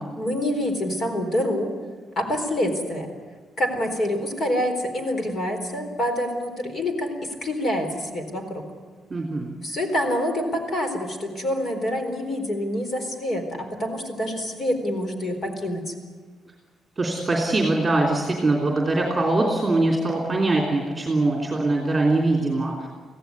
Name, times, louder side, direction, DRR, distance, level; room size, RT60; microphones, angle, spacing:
voice 1, 0.2-1.7 2.2-3.1 3.6-7.1 7.4-8.6 9.6-15.9, left 1 dB, 35° left, 5 dB, 4.1 m, -26 dB
voice 2, 9.1-9.5 17.0-22.9, right 2 dB, 15° right, 0 dB, 3.2 m, -22 dB
25.0 x 16.5 x 9.6 m, 1.5 s
cardioid pair, 165°, 0 cm